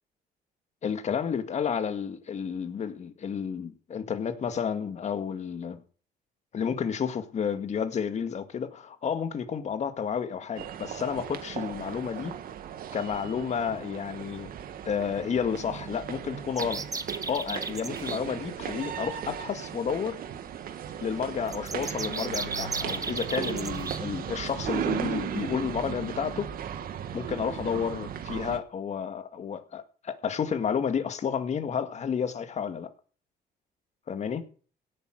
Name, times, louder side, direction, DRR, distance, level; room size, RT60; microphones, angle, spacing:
voice 1, 0.8-5.8 6.5-12.4 12.9-14.5 14.9-16.9 17.3-20.2 21.0-26.5 27.1-32.9 34.1-34.4, left 7 dB, 40° left, 2.1 m, -31 dB
sound 1, 10.5-28.6, right 9 dB, 60° right, 1.8 m, -36 dB
sound 2, 16.6-18.2 21.5-24.0, right 4 dB, 20° right, 1.2 m, -35 dB
17.0 x 8.7 x 6.5 m
cardioid pair, 110°, 17 cm